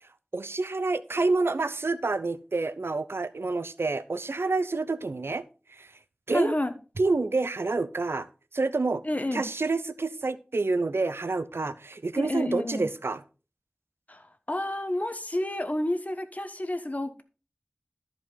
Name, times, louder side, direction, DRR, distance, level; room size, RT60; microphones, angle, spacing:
voice 1, 0.3-5.4 5.7-5.9 6.3-6.6 7.0-8.3 8.5-9.0 9.3-13.2, right 3 dB, 80° right, 14 dB, 0.6 m, -28 dB
voice 2, 6.3-6.7 9.0-9.4 12.1-12.8 14.1-17.2, left 1 dB, 40° left, 9 dB, 1.2 m, -30 dB
13.5 x 5.0 x 4.0 m, 0.35 s
wide cardioid pair, 45°, 4 cm